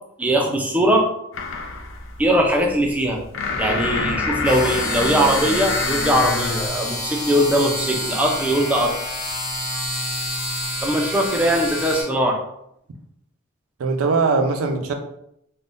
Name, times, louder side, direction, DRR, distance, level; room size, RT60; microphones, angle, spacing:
voice 1, 0.2-1.1 2.2-3.2 3.6-8.9 10.8-12.4, right 1 dB, 5° right, 0 dB, 0.4 m, -20 dB
sound 1, 1.3-6.7, left 4 dB, 65° left, 0.4 m, -27 dB
sound 2, 4.4-12.0, left 1 dB, 40° left, 0.9 m, -28 dB
voice 2, 13.8-14.9, right 4 dB, 85° right, 5 dB, 0.4 m, -21 dB
3.5 x 2.1 x 2.5 m, 0.76 s
head